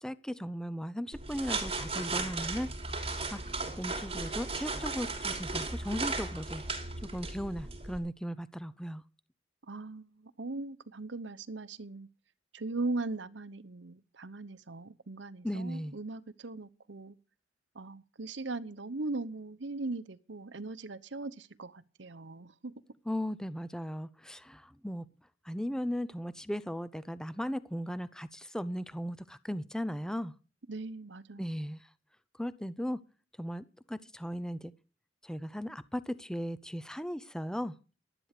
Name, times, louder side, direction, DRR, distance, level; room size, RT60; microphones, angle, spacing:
voice 1, 0.0-2.7 3.3-3.4 3.8-6.6 7.1-9.0 15.4-15.9 23.1-25.0 25.5-30.3 31.4-31.8 32.4-33.0 33.4-34.7 35.2-37.7, equal, 5° left, 0.6 m, -37 dB
sound 1, 1.1-8.0, right 3 dB, 35° right, 3.3 m, -36 dB
voice 2, 9.7-12.1 12.5-17.2 17.7-22.7 30.7-31.5, right 3 dB, 70° right, 0.9 m, -39 dB
12.0 x 11.5 x 6.7 m
head